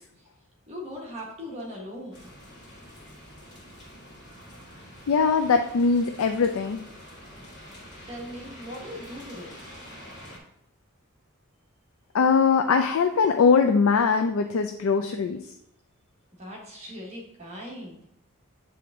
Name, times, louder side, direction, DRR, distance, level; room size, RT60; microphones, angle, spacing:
voice 1, 0.7-2.3 8.1-9.7 16.4-18.0, equal, 30° right, -2 dB, 1.4 m, -39 dB
sound 1, 2.1-10.4, equal, 55° left, 2.1 m, -46 dB
voice 2, 5.1-6.8 12.1-15.4, left 5 dB, 80° left, 6 dB, 0.4 m, -21 dB
7.7 x 3.5 x 3.6 m, 0.80 s
head